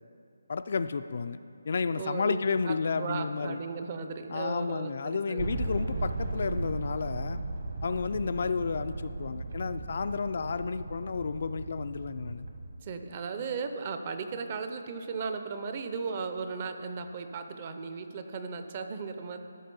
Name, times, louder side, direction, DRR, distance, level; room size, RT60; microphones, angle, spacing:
voice 1, 0.5-1.4 1.7-3.6 4.3-7.4 7.8-12.5, left 5 dB, 45° left, 10 dB, 0.3 m, -31 dB
voice 2, 2.0-2.4 2.7-5.5 12.8-19.4, right 5 dB, 25° right, 7 dB, 0.5 m, -36 dB
sound 1, 5.4-12.8, right 2 dB, 50° right, 1.2 m, -36 dB
13.0 x 6.0 x 5.4 m, 2.5 s
hypercardioid pair, 170°, 0 cm